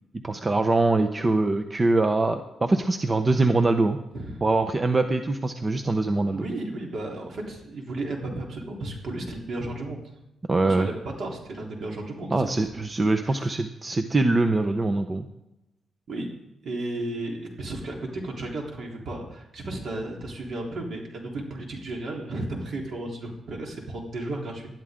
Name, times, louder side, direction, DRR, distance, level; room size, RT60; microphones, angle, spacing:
voice 1, 0.2-4.0 4.4-6.4 10.5-10.9 12.3-15.3, right 2 dB, 25° right, 7 dB, 0.7 m, -23 dB
voice 2, 4.1-4.5 6.2-10.0 10.6-12.9 13.2-13.5 16.1-16.3 16.6-24.8, right 2 dB, 55° right, 0 dB, 3.6 m, -34 dB
20.0 x 12.0 x 3.7 m, 0.94 s
wide cardioid pair, 140°, 0 cm